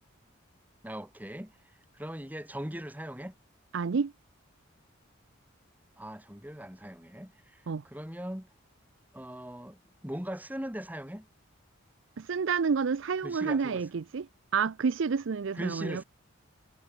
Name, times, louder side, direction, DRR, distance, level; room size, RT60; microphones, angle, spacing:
voice 1, 0.8-1.5 1.9-3.3 6.0-8.5 9.1-11.3 13.2-13.9 15.5-16.0, equal, 10° right, 2.7 m, -40 dB
voice 2, 3.7-4.1 7.7-7.8 12.2-14.3 14.5-16.0, right 5 dB, 65° right, 0.5 m, -29 dB
head